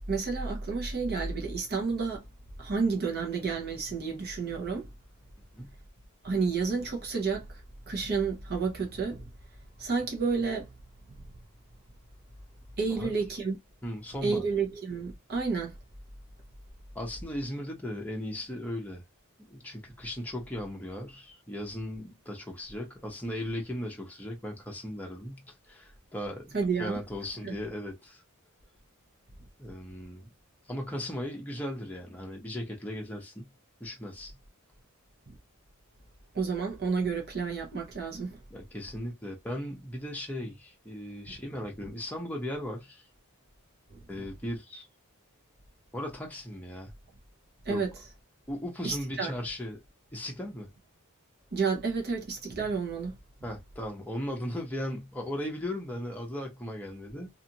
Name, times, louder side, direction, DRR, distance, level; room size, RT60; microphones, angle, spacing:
voice 1, 0.1-2.2 2.6-4.9 6.2-9.3 9.8-10.7 11.1-11.2 12.8-13.6 14.2-15.8 26.5-27.0 27.4-27.6 35.3-35.4 36.3-38.4 41.3-41.4 43.9-44.3 47.6-47.9 48.8-49.3 51.5-53.1, right 4 dB, 45° right, 0.8 m, -30 dB
voice 2, 13.8-14.4 16.9-19.0 19.5-28.2 29.6-30.3 30.7-33.5 33.8-34.3 38.5-43.0 44.1-44.9 45.9-46.9 47.7-47.8 48.5-49.8 50.1-50.7 53.4-57.3, left 1 dB, 5° left, 0.7 m, -37 dB
2.5 x 2.4 x 2.8 m
head